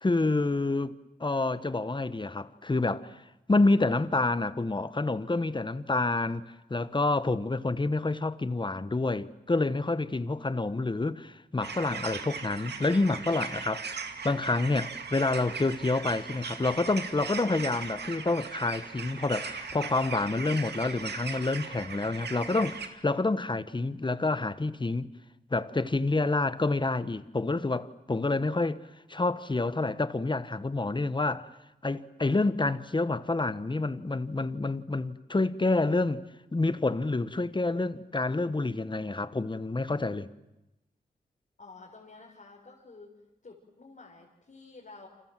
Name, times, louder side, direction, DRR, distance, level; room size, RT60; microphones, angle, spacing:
voice 1, 0.0-0.9 1.2-3.1 3.5-6.4 6.7-25.1 25.5-28.8 29.1-31.5 31.8-36.2 36.5-40.3, left 2 dB, 30° left, 1.4 m, -28 dB
sound 1, 11.6-22.9, right 5 dB, 90° right, 2.3 m, -39 dB
voice 2, 41.6-43.1 43.4-45.1, left 3 dB, 50° left, 5.2 m, -50 dB
29.0 x 27.0 x 7.6 m
cardioid pair, 65°, 17 cm